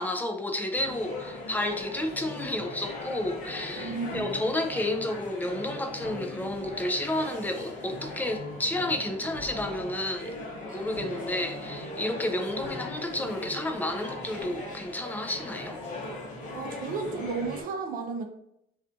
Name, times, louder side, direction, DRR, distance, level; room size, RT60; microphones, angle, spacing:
voice 1, 0.0-10.3 10.7-15.8, left 1 dB, 10° left, 5 dB, 0.3 m, -31 dB
sound 1, 0.7-17.6, left 2 dB, 50° left, 0.7 m, -39 dB
voice 2, 3.8-4.5 16.5-18.2, right 4 dB, 55° right, 4 dB, 0.5 m, -33 dB
sound 2, 4.1-4.7 6.0-6.7 8.8-9.3 10.9-11.5 12.6-13.4 14.4-15.0, left 2 dB, 85° left, 1.0 m, -43 dB
2.4 x 2.4 x 2.4 m, 0.77 s
cardioid pair, 110°, 17 cm